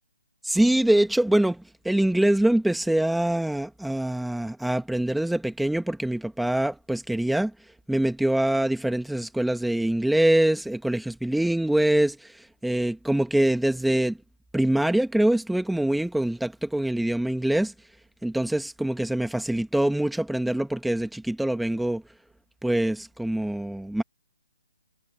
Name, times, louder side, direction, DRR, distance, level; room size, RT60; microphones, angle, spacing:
voice 1, 0.4-7.5 7.9-12.2 12.6-14.2 14.5-17.7 18.2-22.0 22.6-24.0, right 1 dB, ahead, 1.5 m, -24 dB
hypercardioid pair, 165°, 0 cm